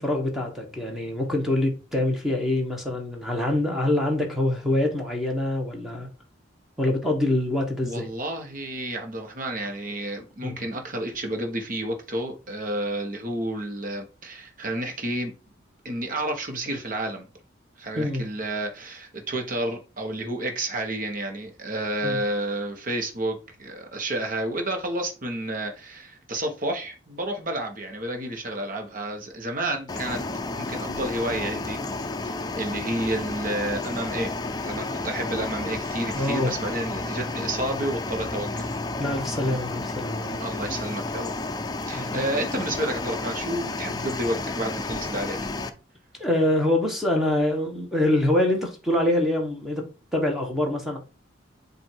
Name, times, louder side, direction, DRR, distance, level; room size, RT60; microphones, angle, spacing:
voice 1, 0.0-6.1 6.8-8.1 10.4-10.5 17.9-18.3 22.0-22.2 36.1-36.5 39.0-40.4 41.9-42.2 46.2-49.8 50.1-51.0, left 1 dB, ahead, 1.4 m, -25 dB
voice 2, 7.8-15.3 15.8-17.3 17.8-30.2 30.6-31.8 32.2-34.3 34.6-38.8 40.4-41.3 41.9-45.4, right 1 dB, 45° right, 1.2 m, -30 dB
sound 1, 29.9-45.7, left 3 dB, 20° left, 0.5 m, -31 dB
7.6 x 2.7 x 4.6 m
head